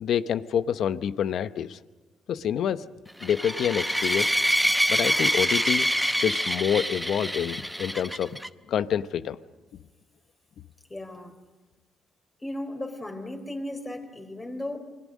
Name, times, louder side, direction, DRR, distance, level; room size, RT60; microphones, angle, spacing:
voice 1, 0.0-1.8 2.3-2.8 3.2-4.3 4.9-5.9 6.2-8.4 8.7-9.4, left 9 dB, 70° left, 13 dB, 0.8 m, -27 dB
sound 1, 3.2-8.5, equal, ahead, 0.8 m, -26 dB
voice 2, 10.9-11.3 12.4-14.8, left 1 dB, 20° left, 5 dB, 3.7 m, -35 dB
29.0 x 21.5 x 6.4 m, 1.2 s
cardioid pair, 90°, 0 cm